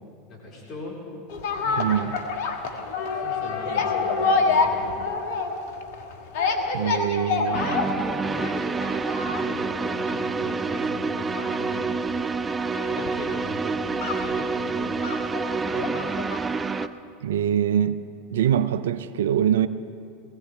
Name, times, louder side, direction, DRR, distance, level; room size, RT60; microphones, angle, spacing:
voice 1, 0.3-1.0 1.5-2.1 3.1-5.2 7.4-8.6 9.3-11.9 12.9-15.3 15.7-16.0, left 1 dB, 45° left, 3.8 m, -39 dB
sound 1, 1.3-16.5 16.8-16.9, left 4 dB, 70° left, 1.4 m, -28 dB
voice 2, 1.8-2.2 6.7-7.6 17.2-19.7, right 9 dB, 80° right, 0.5 m, -24 dB
sound 2, 7.5-16.9, right 4 dB, 20° right, 0.5 m, -28 dB
20.5 x 16.0 x 3.3 m
hypercardioid pair, 85°, 0 cm